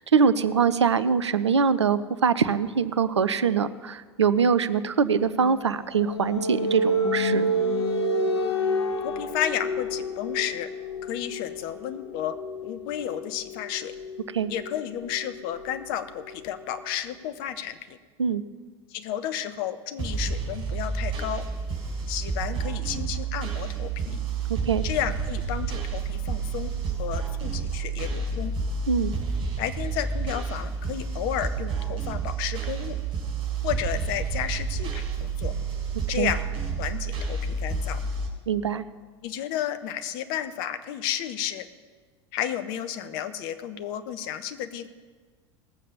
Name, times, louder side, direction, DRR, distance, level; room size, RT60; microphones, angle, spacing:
voice 1, 0.0-7.5 14.3-14.5 18.2-18.4 24.5-24.8 28.9-29.1 36.2-36.3 38.5-38.8, right 6 dB, 80° right, 14 dB, 0.6 m, -23 dB
sound 1, 5.2-16.7, equal, 75° left, 1.1 m, -30 dB
voice 2, 9.0-10.7 11.0-12.4 12.6-13.9 14.5-18.0 18.9-21.4 22.1-24.2 24.8-26.7 27.0-28.5 29.6-33.0 33.6-35.5 36.1-36.4 36.8-38.0 39.2-41.7 42.3-44.9, left 10 dB, 55° left, 10 dB, 1.0 m, -32 dB
sound 2, 20.0-38.3, right 5 dB, 35° right, 3.9 m, -30 dB
18.5 x 7.5 x 6.8 m, 1.4 s
figure-of-eight pair, 75°, 14 cm